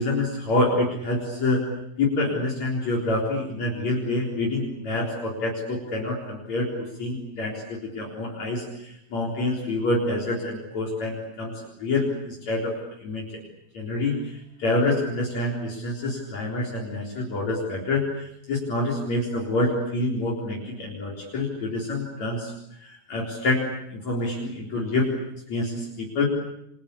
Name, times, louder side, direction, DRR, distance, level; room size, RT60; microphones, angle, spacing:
voice 1, 0.0-1.7 2.0-13.3 13.7-22.5 22.8-25.1 25.5-26.3, left 2 dB, 50° left, -1 dB, 5.2 m, -27 dB
28.5 x 24.0 x 8.4 m, 0.77 s
omnidirectional pair, 4.0 m